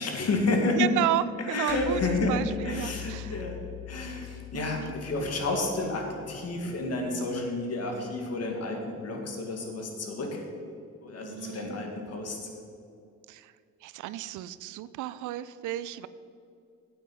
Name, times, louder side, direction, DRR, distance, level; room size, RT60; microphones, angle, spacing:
voice 1, 0.0-0.9 1.4-2.4 2.6-3.6 3.9-10.4 11.0-12.5, left 2 dB, 55° left, 2 dB, 2.0 m, -30 dB
voice 2, 0.7-2.0 2.3-3.4 4.5-4.9 11.2-11.8 13.3-13.5 13.8-16.1, right 13 dB, 80° right, 16 dB, 0.5 m, -32 dB
sound 1, 1.7-6.4, left 9 dB, 35° left, 2.6 m, -41 dB
9.1 x 7.9 x 5.5 m, 2.5 s
cardioid pair, 90°, 30 cm